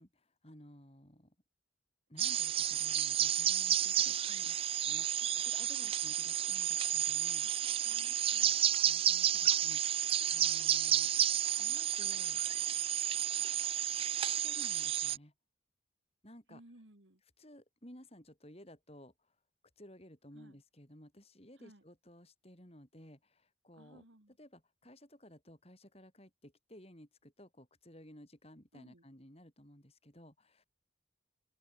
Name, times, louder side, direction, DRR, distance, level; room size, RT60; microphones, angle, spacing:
voice 1, 0.0-1.3 2.1-7.5 8.8-12.4 14.2-15.3 16.2-16.6 17.4-19.3 19.8-24.0 24.4-30.6, equal, 30° left, 5.8 m, -56 dB
sound 1, 2.2-15.2, right 11 dB, 30° right, 0.3 m, -31 dB
voice 2, 7.8-8.6 16.5-17.2 20.3-20.6 21.6-21.8 23.7-24.4 28.7-29.0, right 1 dB, 70° right, 2.9 m, -59 dB
open air
head